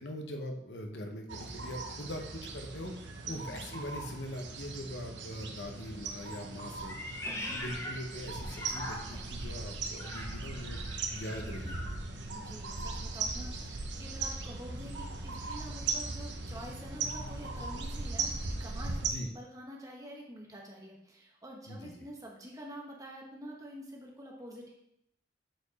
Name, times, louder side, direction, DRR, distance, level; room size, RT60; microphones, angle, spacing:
voice 1, 0.0-2.9 3.3-6.9 7.5-10.8 11.1-11.8 19.0-19.3 21.7-22.1, left 1 dB, 70° left, 4 dB, 0.9 m, -42 dB
sound 1, 1.3-19.1, right 3 dB, 80° right, 0.9 m, -38 dB
Meow, 6.8-9.4 9.9-12.0, left 1 dB, 15° left, 0.7 m, -42 dB
voice 2, 7.3-7.6 12.3-24.7, equal, 20° right, -1 dB, 1.2 m, -47 dB
8.0 x 4.5 x 4.1 m, 0.78 s
head